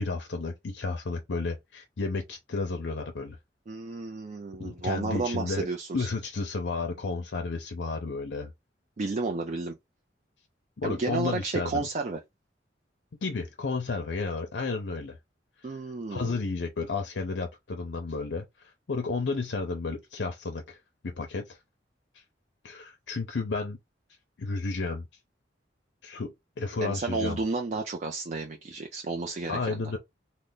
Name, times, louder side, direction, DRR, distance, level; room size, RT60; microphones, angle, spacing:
voice 1, 0.0-3.4 4.6-5.7 5.9-8.5 10.8-11.9 13.2-15.2 15.6-15.8 16.1-20.8 21.0-21.6 22.1-22.2 22.6-23.8 24.4-25.1 26.0-27.4 29.5-30.0, left 3 dB, 65° left, 0.6 m, -32 dB
voice 2, 3.7-6.1 9.0-9.7 10.8-12.2 15.6-16.4 26.8-29.8, right 3 dB, 40° right, 0.4 m, -32 dB
3.2 x 2.1 x 3.8 m
head